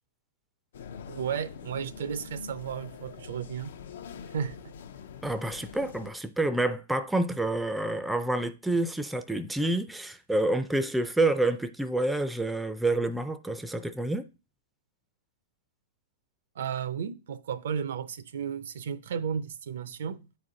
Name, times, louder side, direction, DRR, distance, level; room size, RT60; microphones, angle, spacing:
sound 1, 0.7-6.1, left 6 dB, 70° left, 0.5 m, -44 dB
voice 1, 1.1-3.7 4.3-4.7 16.6-20.3, right 7 dB, 75° right, 0.5 m, -34 dB
voice 2, 5.2-14.3, right 2 dB, 5° right, 0.4 m, -28 dB
9.0 x 4.1 x 3.8 m
hypercardioid pair, 140°, 0 cm